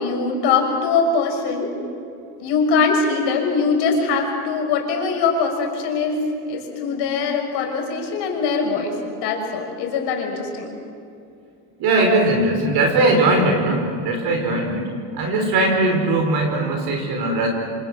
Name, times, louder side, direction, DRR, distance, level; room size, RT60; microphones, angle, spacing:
voice 1, 0.0-1.7 2.4-10.7, left 4 dB, 60° left, 2 dB, 6.2 m, -22 dB
voice 2, 11.8-14.9 15.1-17.5, right 2 dB, 50° right, 2 dB, 4.8 m, -19 dB
26.5 x 26.0 x 6.3 m, 2.5 s
cardioid pair, 145°, 46 cm